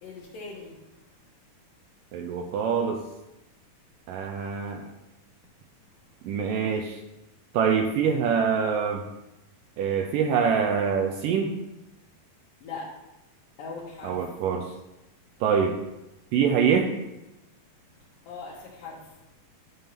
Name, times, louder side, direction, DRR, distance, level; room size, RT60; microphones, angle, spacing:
voice 1, 0.0-0.8 12.6-12.9 13.6-14.2 18.3-19.1, left 4 dB, 70° left, -6 dB, 2.9 m, -39 dB
voice 2, 2.1-3.0 4.1-4.9 6.2-7.0 7.5-9.1 9.8-11.6 14.0-14.7 15.4-15.8 16.3-17.0, right 6 dB, 80° right, 4 dB, 2.1 m, -25 dB
11.0 x 3.7 x 5.8 m, 0.96 s
omnidirectional pair, 4.3 m